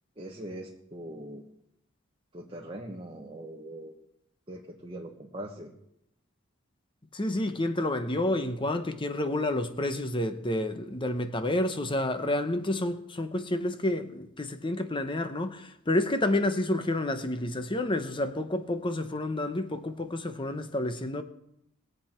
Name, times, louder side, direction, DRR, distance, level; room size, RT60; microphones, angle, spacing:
voice 1, 0.2-1.4 2.3-3.9 4.5-5.7, right 1 dB, 25° right, 1.3 m, -41 dB
voice 2, 7.1-21.2, left 1 dB, 25° left, 0.9 m, -29 dB
21.0 x 7.8 x 4.5 m
head